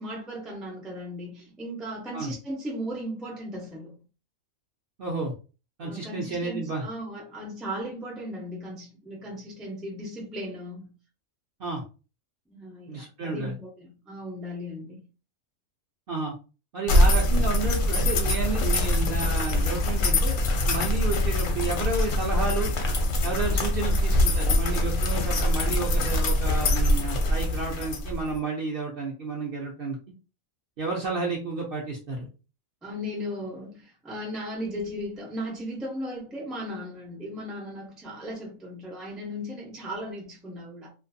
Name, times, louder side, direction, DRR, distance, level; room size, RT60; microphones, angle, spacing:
voice 1, 0.0-4.0 5.8-10.9 12.5-15.0 32.8-40.9, equal, ahead, 0.4 m, -36 dB
voice 2, 5.0-5.3 5.8-6.8 11.6-11.8 12.9-13.5 16.1-16.3 16.7-20.4 20.7-22.7 23.2-30.0 30.8-32.3, right 3 dB, 60° right, 0.6 m, -31 dB
sound 1, 16.9-28.4, left 1 dB, 75° left, 1.0 m, -23 dB
2.5 x 2.4 x 2.6 m
omnidirectional pair, 1.4 m